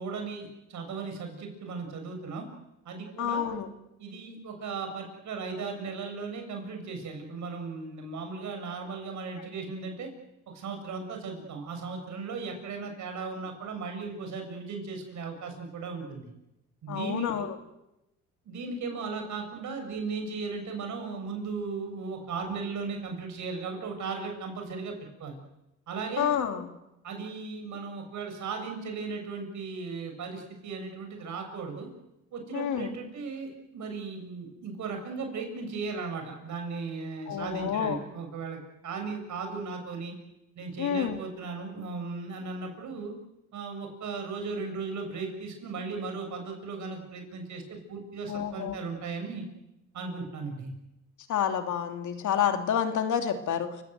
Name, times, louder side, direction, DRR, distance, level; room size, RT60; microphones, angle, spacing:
voice 1, 0.0-2.4 2.9-3.5 4.0-10.1 10.5-16.3 16.8-17.5 18.4-25.4 25.9-26.3 27.0-31.9 32.3-40.1 40.6-43.1 43.5-49.4 49.9-50.7, right 4 dB, 70° right, 4 dB, 7.2 m, -36 dB
voice 2, 3.2-3.7 16.9-17.5 26.2-26.7 32.5-32.9 37.3-38.0 40.8-41.2 48.3-48.7 51.3-53.8, left 8 dB, 75° left, 6 dB, 2.7 m, -29 dB
29.5 x 17.5 x 8.1 m, 0.92 s
cardioid pair, 90°, 30 cm